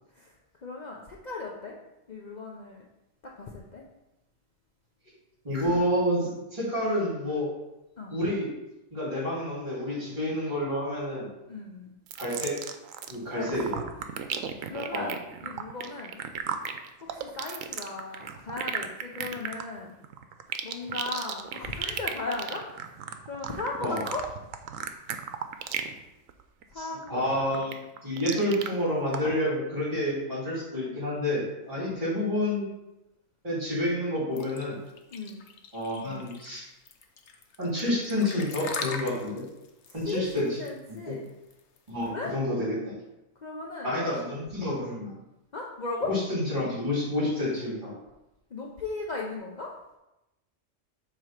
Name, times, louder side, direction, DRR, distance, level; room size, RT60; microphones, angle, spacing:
voice 1, 0.6-1.7 2.1-2.8 3.2-3.8 5.6-5.8 8.0-8.1 11.5-11.9 13.3-13.8 14.6-15.1 15.4-16.2 17.0-19.9 20.6-22.9 23.3-24.3 26.7-27.3 35.1-35.4 40.0-41.2 42.1-42.3 43.4-44.2 45.5-46.1 47.9-48.0 48.5-49.7, left 3 dB, 40° left, -2 dB, 0.7 m, -37 dB
voice 2, 5.4-7.5 8.1-8.5 8.9-11.3 12.2-12.6 13.1-13.8 14.9-15.1 23.8-24.0 26.7-32.7 33.4-34.8 35.7-36.6 37.6-39.4 39.9-40.6 41.9-42.9 43.8-45.1 46.1-47.9, left 1 dB, 35° right, -6 dB, 3.0 m, -29 dB
sound 1, 12.1-13.2 13.4-26.0 26.3-26.6 27.0-28.7 29.1-29.2, right 8 dB, 85° right, 1.0 m, -35 dB
sound 2, 34.4-42.0, left 5 dB, 65° left, 1.0 m, -40 dB
7.7 x 3.0 x 5.8 m, 0.94 s
omnidirectional pair, 1.3 m